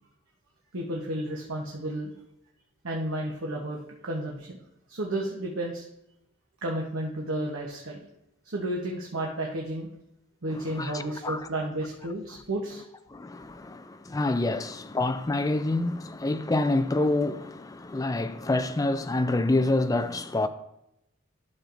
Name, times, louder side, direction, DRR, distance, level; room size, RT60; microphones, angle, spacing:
voice 1, 0.7-2.1 2.8-4.6 4.9-5.8 6.6-8.1 8.4-9.9 10.4-12.8, right 1 dB, 75° right, 0.9 m, -32 dB
voice 2, 10.5-11.4 13.1-20.5, left 2 dB, 15° left, 0.3 m, -27 dB
12.0 x 6.4 x 2.6 m
head